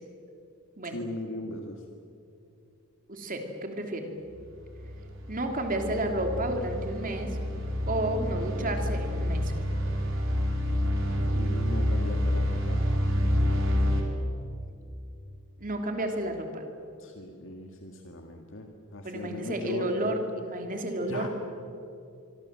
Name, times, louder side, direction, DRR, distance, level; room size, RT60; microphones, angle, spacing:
voice 1, 0.8-1.8 11.4-12.8 17.0-20.1 21.0-21.3, left 1 dB, 60° left, 3 dB, 1.9 m, -38 dB
voice 2, 3.1-4.1 5.3-7.4 7.9-9.5 15.6-16.6 19.0-21.3, right 1 dB, 40° right, 4 dB, 3.1 m, -31 dB
sound 1, 4.3-14.0, equal, 65° right, 4.4 m, -28 dB
24.5 x 24.5 x 7.6 m, 2.6 s
head